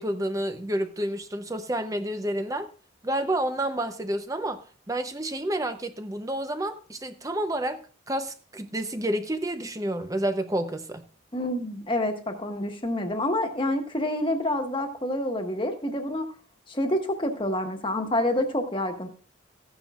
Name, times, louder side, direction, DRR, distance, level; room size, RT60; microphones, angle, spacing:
voice 1, 0.0-2.7 3.0-7.8 8.1-11.0, right 1 dB, 15° right, 0.7 m, -29 dB
voice 2, 11.3-16.3 16.7-19.1, left 1 dB, 25° left, 1.4 m, -27 dB
15.0 x 10.0 x 2.4 m
head